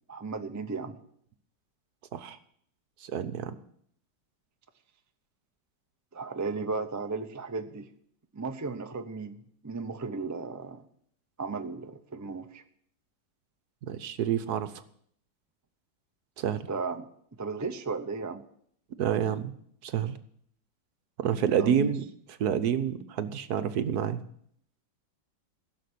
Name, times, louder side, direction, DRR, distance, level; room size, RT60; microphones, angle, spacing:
voice 1, 0.1-1.0 6.1-7.9 8.3-9.4 9.6-10.8 11.4-12.6 16.7-17.1 17.4-18.4 21.6-21.9, right 4 dB, 25° right, 7 dB, 0.3 m, -35 dB
voice 2, 3.0-3.5 13.8-14.7 16.4-16.7 19.0-19.5 19.8-20.2 21.2-22.1 22.4-24.2, right 8 dB, 65° right, 11 dB, 1.4 m, -28 dB
16.0 x 6.8 x 8.4 m, 0.66 s
omnidirectional pair, 1.9 m